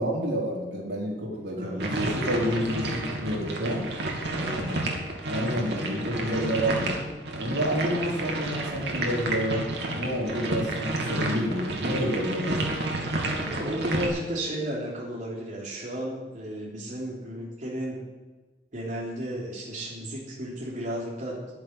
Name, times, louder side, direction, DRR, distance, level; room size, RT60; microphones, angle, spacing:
voice 1, 0.0-3.8 4.3-4.8 5.3-6.9 7.3-9.7 9.9-12.7, equal, 85° right, -3 dB, 4.5 m, -29 dB
sound 1, 1.8-14.1, right 2 dB, 70° right, 2.7 m, -30 dB
voice 2, 4.4-4.8 13.3-18.0 18.7-21.4, equal, 50° right, -3 dB, 3.4 m, -34 dB
11.0 x 11.0 x 8.2 m, 1.3 s
head